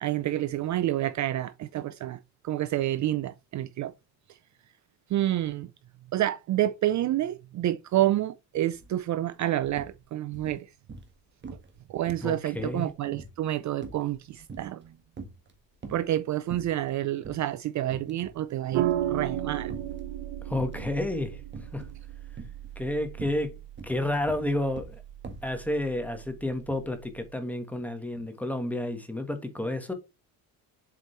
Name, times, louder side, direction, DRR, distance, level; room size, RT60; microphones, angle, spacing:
voice 1, 0.0-3.9 4.3-4.4 5.1-5.7 6.1-10.7 11.9-14.9 15.9-19.7, right 13 dB, 45° right, 0.5 m, -29 dB
sound 1, 8.7-8.9 9.2-10.0 10.3-11.2 11.4-11.8 12.1-14.9 15.1-16.1 16.5-16.9 17.3-17.4 17.9-18.4 18.7-20.1 20.6-21.0 21.5-22.0 22.3-25.6, right 3 dB, 25° right, 1.5 m, -44 dB
voice 2, 12.2-12.9 20.4-21.4 21.7-21.9 22.7-23.5 23.8-25.0 25.4-29.9, left 1 dB, 5° left, 1.3 m, -30 dB
sound 2, 18.7-27.3, right 12 dB, 80° right, 1.1 m, -35 dB
7.5 x 5.0 x 3.2 m
cardioid pair, 140°, 40 cm